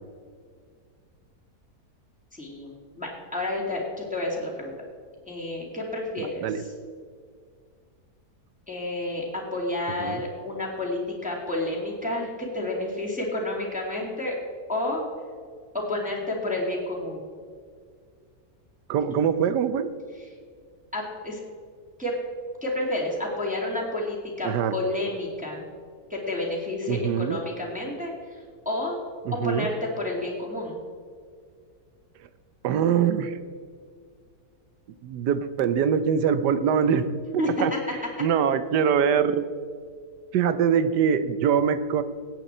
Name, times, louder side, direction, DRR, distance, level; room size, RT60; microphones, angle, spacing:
voice 1, 2.3-4.7 5.3-6.7 8.7-14.4 14.7-15.0 15.7-17.2 20.2-20.3 20.9-21.4 22.0-22.1 22.6-25.6 26.1-29.0 29.3-30.8 37.4-37.5, left 1 dB, 5° right, -4 dB, 2.3 m, -30 dB
voice 2, 6.2-6.6 10.0-10.2 18.9-19.9 24.4-24.7 26.9-27.4 29.3-29.7 32.6-33.3 35.0-37.7 38.2-39.4 40.3-42.0, right 7 dB, 90° right, 12 dB, 1.3 m, -23 dB
17.5 x 8.2 x 4.4 m, 2.1 s
omnidirectional pair, 1.7 m